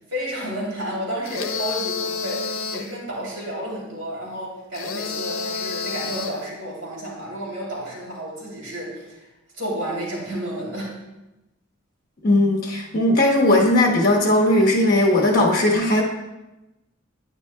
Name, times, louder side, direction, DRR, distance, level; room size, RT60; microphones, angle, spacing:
voice 1, 0.1-9.3 9.5-11.0, equal, 70° right, -5 dB, 3.0 m, -31 dB
sound 1, 1.3-3.0 4.7-6.5, left 5 dB, 80° left, 0.6 m, -29 dB
voice 2, 12.2-16.0, left 1 dB, 45° left, -1 dB, 1.2 m, -18 dB
9.8 x 9.5 x 2.3 m, 0.99 s
head